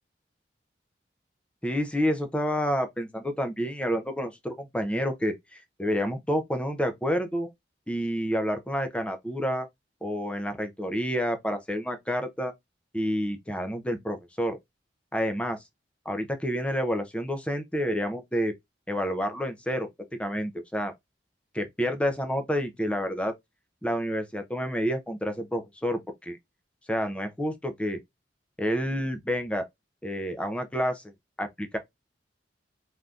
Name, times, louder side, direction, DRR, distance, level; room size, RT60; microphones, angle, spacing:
voice 1, 1.6-7.5 7.9-9.7 10.0-12.5 12.9-14.6 15.1-15.6 16.1-18.5 18.9-19.9 20.2-20.9 21.5-23.3 23.8-26.4 26.9-28.0 28.6-29.6 30.0-31.0 31.4-31.8, equal, 5° left, 0.5 m, -29 dB
3.4 x 2.7 x 2.3 m
head